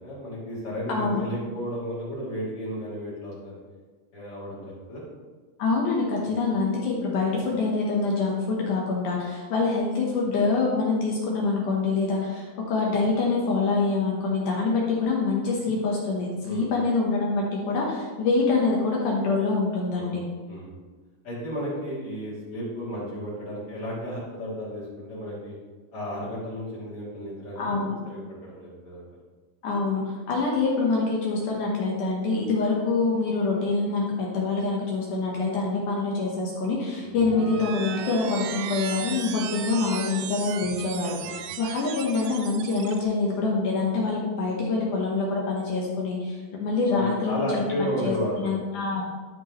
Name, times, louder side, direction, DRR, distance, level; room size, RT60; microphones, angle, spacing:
voice 1, 0.0-3.5 4.1-5.1 6.2-6.4 16.4-16.7 20.0-20.2 20.5-20.7 21.2-25.5 25.9-29.0 37.0-37.1 41.2-41.4 46.9-48.8, equal, 35° left, -9 dB, 3.4 m, -33 dB
voice 2, 0.9-1.2 5.6-20.2 27.6-27.9 29.6-49.0, left 3 dB, 70° left, -2 dB, 2.0 m, -25 dB
sound 1, 37.1-43.0, right 9 dB, 85° right, 2.7 m, -36 dB
13.0 x 5.3 x 3.1 m, 1.4 s
omnidirectional pair, 4.9 m